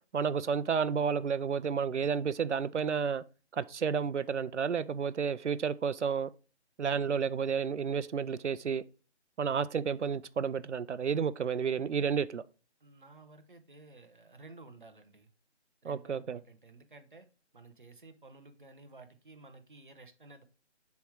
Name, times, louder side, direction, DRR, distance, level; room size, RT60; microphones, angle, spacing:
voice 1, 0.1-3.2 3.5-6.3 6.8-8.8 9.4-12.4 15.8-16.4, right 6 dB, 80° right, 0.6 m, -31 dB
voice 2, 12.8-15.3 15.8-17.3 17.5-20.4, right 3 dB, 45° right, 0.9 m, -54 dB
7.0 x 3.2 x 4.8 m
figure-of-eight pair, 175°, 35 cm